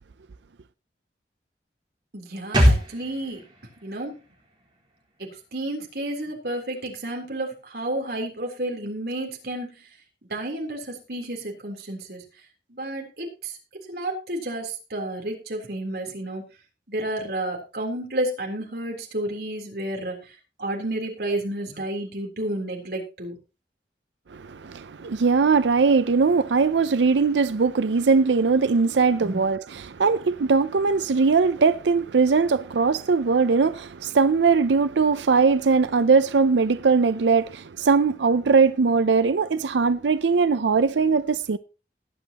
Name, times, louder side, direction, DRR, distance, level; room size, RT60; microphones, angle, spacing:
voice 1, 2.1-3.4 3.8-4.2 5.2-9.7 10.3-12.2 12.7-13.5 13.9-16.4 16.9-20.2 20.6-23.4 29.2-29.4, right 1 dB, 60° right, 3.6 m, -31 dB
sound 1, 2.5-6.1 6.3-6.4, equal, 25° right, 4.4 m, -25 dB
voice 2, 24.3-41.6, right 4 dB, 90° right, 0.5 m, -20 dB
20.0 x 8.4 x 2.9 m
head